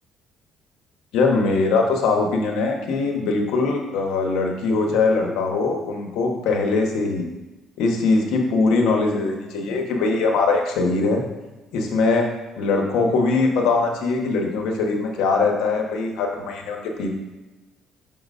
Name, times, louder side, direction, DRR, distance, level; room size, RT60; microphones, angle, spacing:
voice 1, 1.1-7.2 7.8-11.2 11.7-12.2 12.6-17.1, left 3 dB, 85° left, 2 dB, 1.0 m, -21 dB
5.6 x 3.9 x 5.3 m, 1.1 s
cardioid pair, 135°, 0 cm